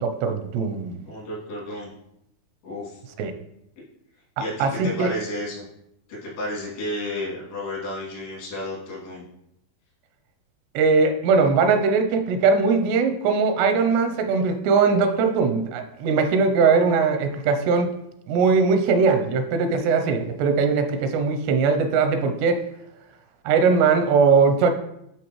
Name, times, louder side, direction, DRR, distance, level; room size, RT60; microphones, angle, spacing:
voice 1, 0.0-1.0 3.2-3.3 4.6-5.1 10.7-17.9 18.3-22.6 23.5-24.7, right 5 dB, 90° right, 7 dB, 2.8 m, -20 dB
voice 2, 1.1-1.9 2.6-3.0 4.4-5.6 6.1-9.2, left 1 dB, 75° left, -7 dB, 4.8 m, -32 dB
11.5 x 3.9 x 3.1 m, 0.80 s
omnidirectional pair, 4.7 m